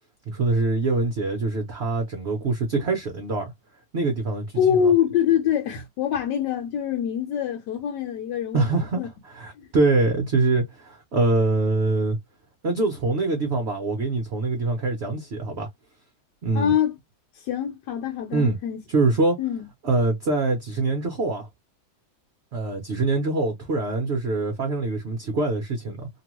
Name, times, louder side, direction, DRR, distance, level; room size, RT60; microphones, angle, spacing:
voice 1, 0.3-3.5 3.9-4.9 8.5-12.2 12.6-15.7 16.4-16.7 18.3-18.6 18.9-19.4 19.8-21.5 22.5-26.1, right 3 dB, 60° right, 0.7 m, -24 dB
voice 2, 4.6-8.7 9.0-9.1 9.6-9.7 16.5-17.0 17.4-18.8 19.4-19.7, left 9 dB, 70° left, 1.3 m, -24 dB
2.9 x 2.3 x 3.0 m
omnidirectional pair, 2.0 m